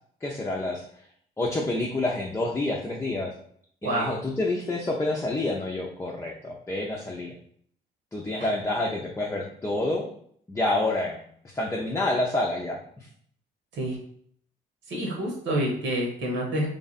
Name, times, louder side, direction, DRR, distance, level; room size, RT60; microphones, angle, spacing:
voice 1, 0.2-0.8 1.4-3.3 3.8-7.3 8.1-10.1 10.5-11.2 11.5-12.8, left 2 dB, 15° left, -2 dB, 0.6 m, -28 dB
voice 2, 3.8-4.1 13.7-14.0 14.9-16.7, right 1 dB, 75° right, -1 dB, 1.4 m, -28 dB
3.4 x 2.5 x 4.1 m, 0.63 s
cardioid pair, 90°, 20 cm